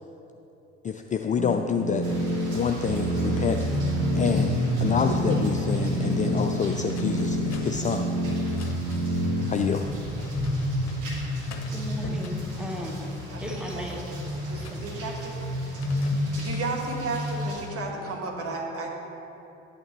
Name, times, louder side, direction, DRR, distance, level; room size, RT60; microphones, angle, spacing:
voice 1, 0.8-2.1 2.4-3.7 4.2-8.1 9.5-9.9, left 6 dB, 25° left, 4 dB, 0.4 m, -27 dB
sound 1, 1.4-9.4, right 1 dB, 25° right, 1.0 m, -29 dB
sound 2, 2.0-17.7, left 1 dB, 60° right, 2.1 m, -30 dB
sound 3, 6.9-9.3 10.1-11.0 11.4-12.7 13.1-15.3 15.6-16.7 17.2-17.6, left 6 dB, 50° left, 0.8 m, -47 dB
voice 2, 11.7-13.0 13.4-14.1 14.7-14.8, equal, ahead, 0 dB, 1.4 m, -36 dB
voice 3, 13.3-13.8 14.2-15.4 16.4-19.0, right 3 dB, 40° right, -1 dB, 1.7 m, -34 dB
11.0 x 8.7 x 3.2 m, 3.0 s
figure-of-eight pair, 55°, 34 cm